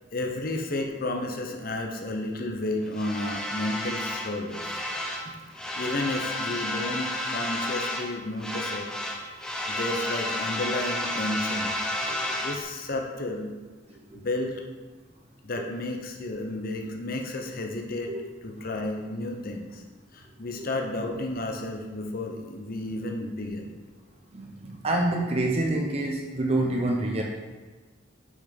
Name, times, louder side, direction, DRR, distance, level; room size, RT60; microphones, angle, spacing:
voice 1, 0.1-4.8 5.8-8.9 9.2-11.7 12.4-13.5 14.1-14.6 15.4-18.1 18.4-19.8 20.1-23.7, left 2 dB, 45° left, 3 dB, 0.8 m, -32 dB
sound 1, 2.9-5.3 5.5-8.1 8.4-12.6, left 1 dB, 5° left, 0.7 m, -31 dB
voice 2, 24.3-27.2, right 2 dB, 30° right, -1 dB, 0.8 m, -27 dB
6.2 x 6.0 x 5.1 m, 1.3 s
head